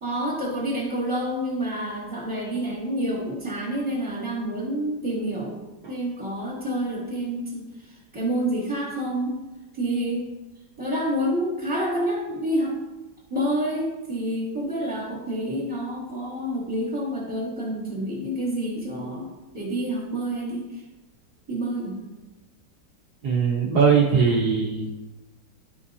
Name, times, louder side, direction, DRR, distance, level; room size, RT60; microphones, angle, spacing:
voice 1, 0.0-5.6 5.9-9.4 9.7-10.3 10.8-12.8 13.3-20.8 21.5-22.0, right 1 dB, 15° right, -5 dB, 2.6 m, -28 dB
voice 2, 23.2-24.9, right 5 dB, 65° right, -5 dB, 1.6 m, -20 dB
11.5 x 5.7 x 2.7 m, 1.0 s
omnidirectional pair, 1.9 m